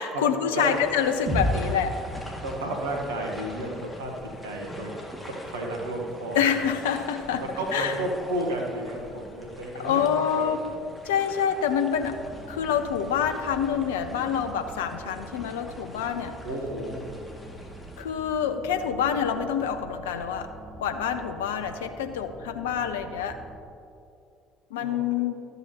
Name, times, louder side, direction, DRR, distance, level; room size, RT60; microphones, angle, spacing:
voice 1, 0.0-2.0 6.3-7.4 7.7-7.9 9.8-10.7 11.1-12.2 12.5-16.3 18.0-20.5 20.8-23.4 24.7-25.4, left 8 dB, 75° left, 8 dB, 0.4 m, -26 dB
sound 1, 0.6-18.0, left 1 dB, 10° left, 1.9 m, -44 dB
sound 2, 1.3-5.2, equal, 45° right, 2.0 m, -33 dB
voice 2, 2.4-4.1 4.4-4.9 5.2-6.6 7.4-10.0 10.3-10.5 16.4-17.0 24.8-25.0, right 1 dB, 80° right, 1 dB, 1.1 m, -32 dB
sound 3, 11.9-23.6, right 1 dB, 65° right, 2.1 m, -45 dB
12.5 x 8.1 x 2.8 m, 2.5 s
figure-of-eight pair, 55°, 0 cm